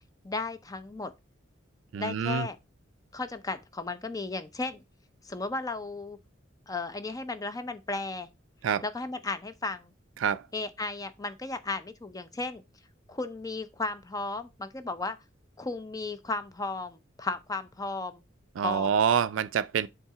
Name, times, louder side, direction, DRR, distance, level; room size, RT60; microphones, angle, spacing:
voice 1, 0.2-1.1 1.9-2.6 3.1-4.8 5.2-6.2 6.7-8.3 8.8-9.9 10.5-12.6 13.1-15.2 15.6-18.2 18.6-18.9, left 3 dB, 20° left, 0.6 m, -34 dB
voice 2, 1.9-2.5 8.6-8.8 10.2-10.4 18.6-19.9, right 7 dB, 85° right, 0.4 m, -26 dB
7.1 x 3.7 x 4.7 m
head